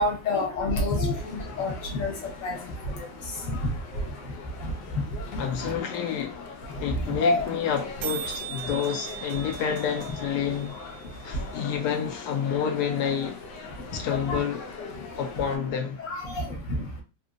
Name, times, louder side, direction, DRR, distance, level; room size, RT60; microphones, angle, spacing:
voice 1, 0.0-2.1 2.4-2.6 3.5-3.6 5.3-5.4 7.2-7.4 14.3-14.4 16.0-16.4, left 2 dB, 50° left, 1.4 m, -27 dB
sound 1, 1.1-15.6, left 3 dB, 90° left, 1.4 m, -42 dB
voice 2, 5.4-6.5 6.8-10.8 11.2-13.4 13.9-14.6 15.2-16.0, left 8 dB, 75° left, 1.0 m, -29 dB
sound 2, 5.9-6.0 6.2-6.3 6.5-6.7 7.0-7.1 7.2-7.5 7.7-12.0, right 10 dB, 80° right, 0.7 m, -39 dB
3.4 x 2.8 x 2.5 m
omnidirectional pair, 1.9 m